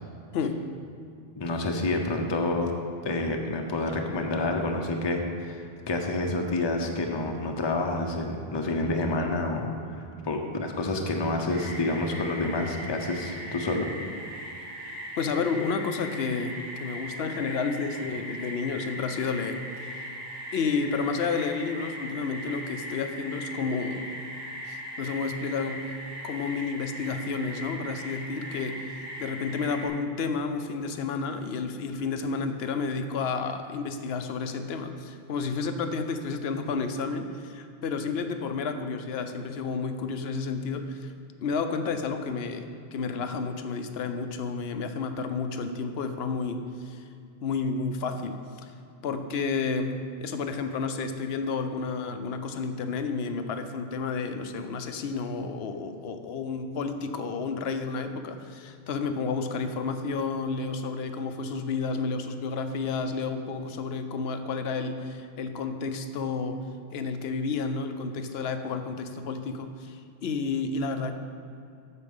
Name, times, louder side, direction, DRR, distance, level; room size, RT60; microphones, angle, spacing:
voice 1, 1.4-2.7 3.0-13.9, left 2 dB, 30° left, 3 dB, 0.7 m, -28 dB
sound 1, 11.5-29.9, equal, 65° right, 2.2 m, -39 dB
voice 2, 15.2-20.0 20.5-24.1 24.6-26.0 26.2-41.1 41.4-47.1 47.4-48.7 49.0-66.6 66.9-71.1, left 4 dB, 80° left, 7 dB, 0.9 m, -31 dB
8.4 x 6.6 x 5.4 m, 2.4 s
omnidirectional pair, 1.0 m